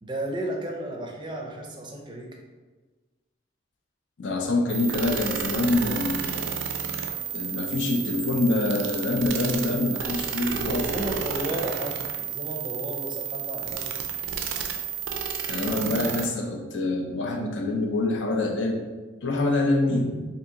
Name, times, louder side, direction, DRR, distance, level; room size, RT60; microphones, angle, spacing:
voice 1, 0.0-2.4 10.7-13.9, right 1 dB, 25° right, 1 dB, 0.5 m, -33 dB
voice 2, 4.2-6.6 7.3-11.1 15.5-18.8 19.2-20.3, left 2 dB, 85° left, 2 dB, 0.5 m, -26 dB
sound 1, 4.7-16.3, right 7 dB, 90° right, 0.4 m, -31 dB
2.8 x 2.6 x 3.7 m, 1.3 s
head